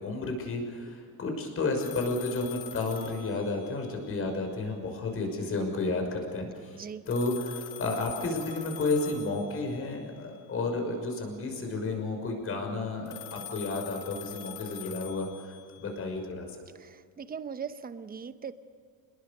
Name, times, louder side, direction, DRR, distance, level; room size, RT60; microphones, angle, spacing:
voice 1, 0.0-6.8 7.1-16.5, left 3 dB, 35° left, 4 dB, 6.2 m, -32 dB
sound 1, 1.8-4.1 7.1-9.9 13.1-16.0, left 9 dB, 85° left, 2.2 m, -43 dB
voice 2, 6.7-7.1 16.7-18.5, right 7 dB, 25° right, 11 dB, 1.0 m, -40 dB
27.0 x 21.5 x 6.8 m, 2.2 s
cardioid pair, 145°, 37 cm